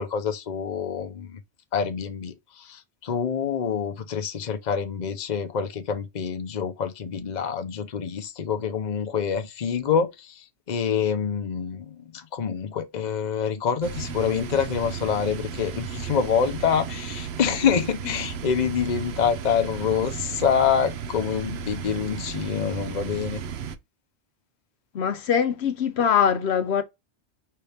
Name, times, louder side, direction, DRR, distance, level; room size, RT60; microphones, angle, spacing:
voice 1, 0.0-1.4 1.7-23.4, left 7 dB, 45° left, 0.8 m, -26 dB
sound 1, 13.8-23.8, right 7 dB, 70° right, 0.9 m, -34 dB
voice 2, 24.9-26.8, left 8 dB, 70° left, 0.9 m, -22 dB
5.6 x 2.7 x 3.3 m
omnidirectional pair, 1.1 m